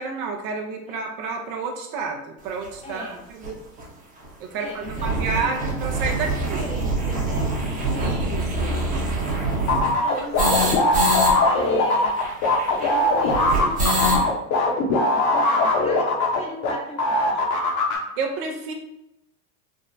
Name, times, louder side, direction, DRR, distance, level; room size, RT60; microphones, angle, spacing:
voice 1, 0.0-3.6 4.4-6.7 8.0-8.7 18.2-18.7, right 4 dB, 55° right, 3 dB, 0.6 m, -30 dB
sound 1, 2.6-2.7 3.4-3.5 3.8-3.9 4.2-4.3 4.6-11.3 11.6-11.7 11.9-14.3, right 2 dB, 20° right, 0.8 m, -25 dB
voice 2, 2.8-3.3 4.5-5.5 6.2-8.3 9.2-9.4 9.8-10.7 11.4-12.2 12.8-14.3 15.1-17.4, left 1 dB, 15° left, -2 dB, 0.9 m, -38 dB
sound 2, 9.7-16.7 17.0-18.0, left 2 dB, 45° left, 0.8 m, -20 dB
3.5 x 2.1 x 2.6 m, 0.87 s
hypercardioid pair, 105°, 41 cm